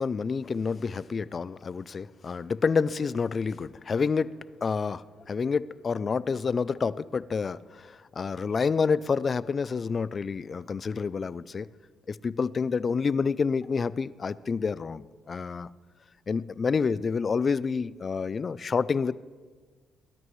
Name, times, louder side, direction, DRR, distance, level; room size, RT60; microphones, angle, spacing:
voice 1, 0.0-11.7 12.1-15.7 16.3-19.1, left 5 dB, 40° left, 18 dB, 0.4 m, -28 dB
19.5 x 13.0 x 3.2 m, 1.5 s
cardioid pair, 90°, 0 cm